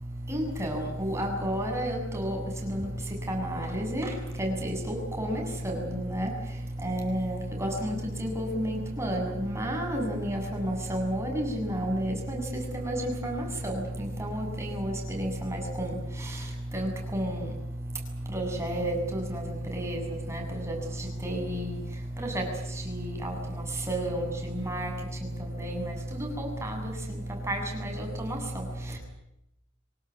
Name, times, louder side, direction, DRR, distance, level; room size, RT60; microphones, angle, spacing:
voice 1, 0.3-2.4 3.3-4.1 4.4-6.3 6.8-12.4 12.7-13.7 14.2-15.9 16.7-17.4 18.3-19.4 19.7-20.8 21.2-21.8 22.3-22.4 22.9-23.4 23.9-24.9 25.6-25.8 26.1-26.8 27.5-28.4, equal, 15° right, 1 dB, 7.6 m, -31 dB
25.5 x 19.0 x 9.6 m, 0.83 s
head